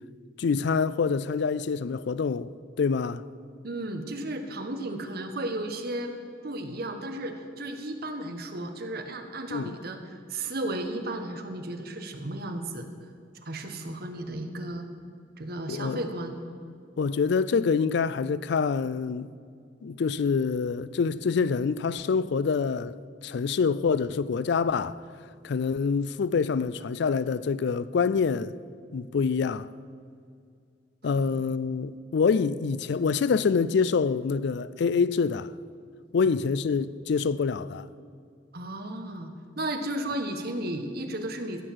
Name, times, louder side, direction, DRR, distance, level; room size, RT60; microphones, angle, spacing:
voice 1, 0.4-2.5 2.8-3.2 9.5-9.8 15.7-16.0 17.0-19.3 19.8-23.0 23.2-25.0 25.4-28.5 28.9-29.7 31.0-35.5 36.1-37.9, left 5 dB, 65° left, 0.4 m, -26 dB
voice 2, 3.6-6.1 6.4-12.9 13.4-14.9 15.4-16.4 31.1-31.4 36.2-36.3 38.5-41.6, right 1 dB, 55° right, 1.2 m, -34 dB
16.0 x 6.6 x 7.6 m
head